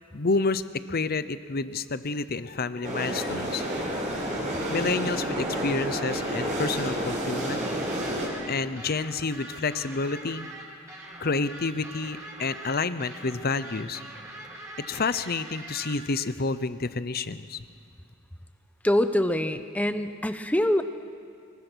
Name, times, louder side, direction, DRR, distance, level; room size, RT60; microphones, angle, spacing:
voice 1, 0.1-0.6 0.9-4.2 4.7-7.6 8.5-10.5 11.2-14.0 14.9-17.6, left 3 dB, 45° left, 13 dB, 0.8 m, -29 dB
sound 1, 2.8-8.3, right 1 dB, 35° right, 5.3 m, -30 dB
sound 2, 7.6-15.9, right 1 dB, 15° right, 5.0 m, -43 dB
voice 2, 18.8-20.8, left 1 dB, 5° left, 9 dB, 0.9 m, -24 dB
24.0 x 21.5 x 6.3 m, 2.4 s
head